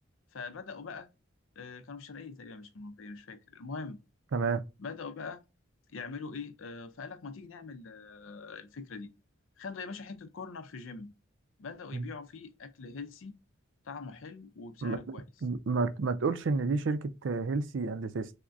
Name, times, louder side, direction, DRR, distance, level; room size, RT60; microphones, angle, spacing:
voice 1, 0.3-1.1 1.6-4.0 4.8-5.4 5.9-9.1 9.6-11.1 11.6-13.4 13.8-15.3, left 4 dB, 75° left, 0.5 m, -43 dB
voice 2, 4.3-4.6 11.9-12.0 14.8-18.3, right 4 dB, 65° right, 0.4 m, -31 dB
5.8 x 2.1 x 2.5 m
head